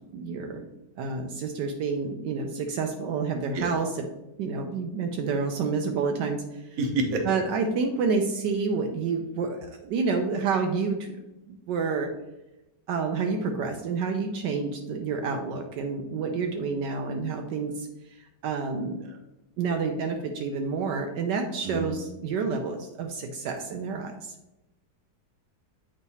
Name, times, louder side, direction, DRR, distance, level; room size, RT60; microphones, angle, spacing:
voice 1, 0.1-0.6 1.0-4.1 4.4-6.4 7.2-11.1 11.5-12.1 12.9-17.9 18.4-19.0 19.6-24.3, right 4 dB, 80° right, 3 dB, 1.2 m, -29 dB
voice 2, 6.8-7.2 21.6-21.9, right 2 dB, 55° right, 4 dB, 1.2 m, -27 dB
8.1 x 3.2 x 4.1 m, 0.97 s
omnidirectional pair, 2.0 m